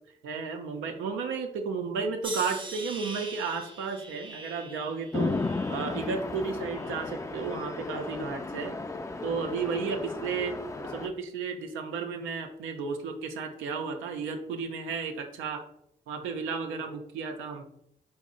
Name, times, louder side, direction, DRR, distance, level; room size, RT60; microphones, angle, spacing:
voice 1, 0.2-5.3 5.7-8.8 9.2-10.5 10.8-15.6 16.1-17.6, right 5 dB, 85° right, 4 dB, 0.4 m, -33 dB
sound 1, 2.2-7.4 7.8-8.5 9.2-9.6, right 3 dB, 25° right, 0.6 m, -44 dB
Chatter / Traffic noise roadway noise / Train, 5.1-11.1, left 3 dB, 15° left, 0.4 m, -34 dB
4.0 x 2.0 x 3.6 m, 0.75 s
hypercardioid pair, 40°, 20 cm